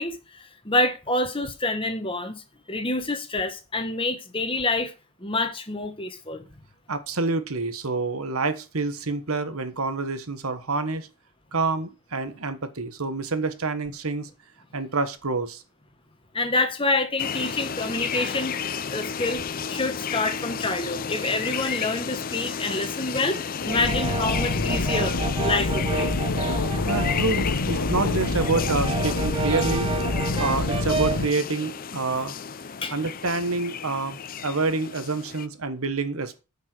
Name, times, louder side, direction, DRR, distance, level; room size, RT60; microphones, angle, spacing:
voice 1, 0.0-2.4 2.7-4.9 5.2-6.5 16.3-18.6 18.9-19.4 19.7-23.4 23.6-26.1 30.3-30.4 32.8-32.9, left 2 dB, 25° left, 1.3 m, -27 dB
voice 2, 6.9-11.1 11.5-14.3 14.7-15.6 26.9-32.3 32.9-36.4, right 3 dB, 75° right, 1.3 m, -27 dB
sound 1, 17.2-35.5, left 6 dB, 40° left, 0.5 m, -33 dB
sound 2, 23.6-31.3, left 2 dB, 70° left, 1.0 m, -27 dB
Brass instrument, 23.7-27.3 27.7-31.3, right 5 dB, 25° right, 0.5 m, -31 dB
9.8 x 5.4 x 6.2 m
head